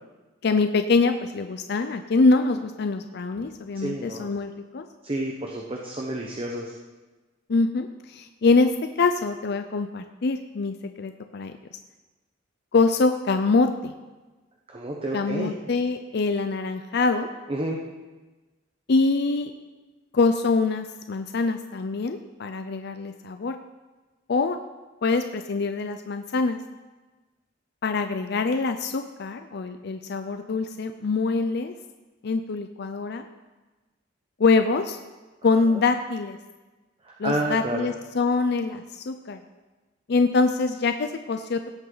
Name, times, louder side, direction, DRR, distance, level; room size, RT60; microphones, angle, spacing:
voice 1, 0.4-4.9 7.5-8.7 9.0-11.5 12.7-13.9 15.1-17.3 18.9-19.5 20.1-23.6 24.3-24.6 25.0-26.6 27.8-31.7 32.2-33.2 34.4-35.0 35.4-36.4 37.2-39.4 40.1-41.7, left 3 dB, 55° left, 8 dB, 0.5 m, -24 dB
voice 2, 3.7-4.3 5.0-6.7 14.7-15.5 17.5-17.8 35.7-35.8 37.0-37.9, right 1 dB, 30° right, 0 dB, 0.9 m, -30 dB
17.0 x 8.0 x 4.0 m, 1.2 s
head